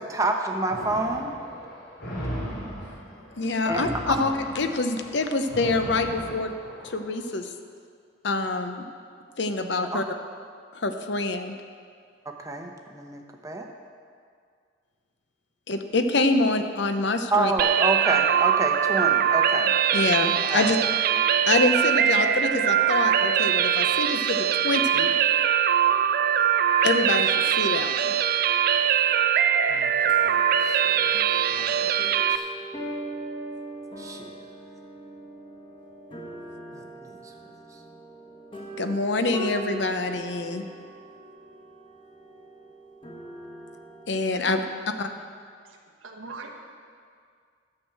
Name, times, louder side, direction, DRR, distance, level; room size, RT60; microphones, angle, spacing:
voice 1, 0.0-1.3 3.7-4.1 9.9-10.0 12.3-13.7 17.3-19.8 20.5-20.7 29.7-29.9 30.2-30.8 31.5-31.9 32.3-32.5 34.0-34.3 36.7-37.2, right 2 dB, 15° right, 2 dB, 0.8 m, -28 dB
sound 1, 0.7-7.1, equal, 80° left, 2.9 m, -37 dB
voice 2, 3.4-6.5 6.8-7.5 8.2-8.9 9.4-10.0 10.7-11.5 15.7-17.5 19.9-20.8 21.5-25.1 26.8-28.1 38.8-40.6 44.1-44.6 45.0-45.1, left 3 dB, 60° left, 7 dB, 0.7 m, -26 dB
sound 2, 17.6-32.4, right 9 dB, 45° right, 0.3 m, -22 dB
sound 3, 29.6-44.8, right 1 dB, 25° left, 1.3 m, -40 dB
voice 3, 45.7-46.5, right 4 dB, 90° right, 2 dB, 1.4 m, -41 dB
11.5 x 6.3 x 7.7 m, 2.1 s
head